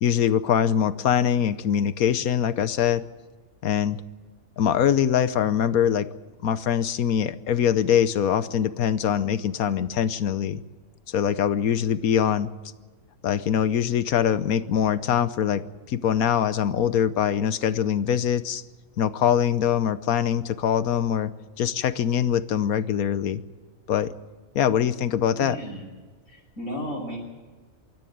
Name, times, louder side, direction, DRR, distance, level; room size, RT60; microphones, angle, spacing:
voice 1, 0.0-3.0 3.6-4.0 4.6-6.1 6.4-10.6 11.1-12.5 13.2-15.6 15.9-18.6 19.0-23.4 23.9-24.1 24.5-25.6, left 9 dB, 85° left, 13 dB, 1.3 m, -23 dB
voice 2, 25.3-25.9 26.3-27.2, equal, 65° left, -5 dB, 6.5 m, -34 dB
25.5 x 14.0 x 9.4 m, 1.4 s
omnidirectional pair, 1.5 m